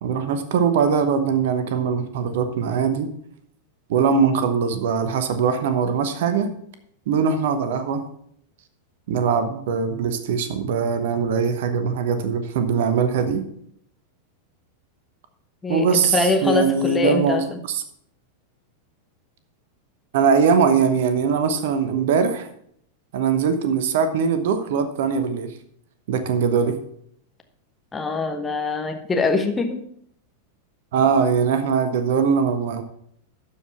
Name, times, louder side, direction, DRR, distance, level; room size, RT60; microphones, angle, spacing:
voice 1, 0.0-3.1 3.9-6.5 7.1-8.0 9.1-13.4 15.7-17.4 17.7-17.8 20.1-22.5 23.1-25.5 26.1-26.8 30.9-32.8, right 6 dB, 55° right, 10 dB, 1.0 m, -21 dB
voice 2, 15.6-17.6 27.9-29.8, left 3 dB, 15° left, 5 dB, 1.1 m, -23 dB
12.0 x 4.9 x 5.8 m, 0.68 s
figure-of-eight pair, 90°, 0 cm